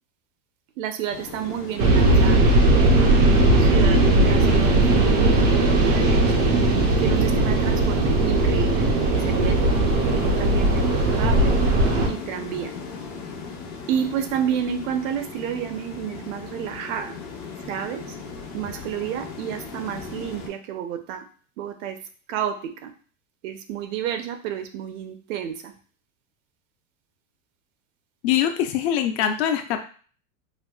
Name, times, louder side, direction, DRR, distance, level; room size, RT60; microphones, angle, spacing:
voice 1, 0.8-3.1 3.6-6.4 7.0-9.8 10.1-11.6 12.1-12.7 13.9-17.1 17.7-18.2 18.5-21.3 21.6-22.0 22.3-22.9 23.4-25.7, right 9 dB, 65° right, 8 dB, 0.6 m, -30 dB
sound 1, 1.1-20.5, left 5 dB, 70° left, 1.0 m, -37 dB
sound 2, 1.8-12.1, right 2 dB, 25° right, 0.3 m, -18 dB
voice 2, 28.2-29.8, left 10 dB, 50° left, 7 dB, 0.5 m, -23 dB
4.6 x 2.1 x 2.3 m, 0.42 s
supercardioid pair, 145°, 41 cm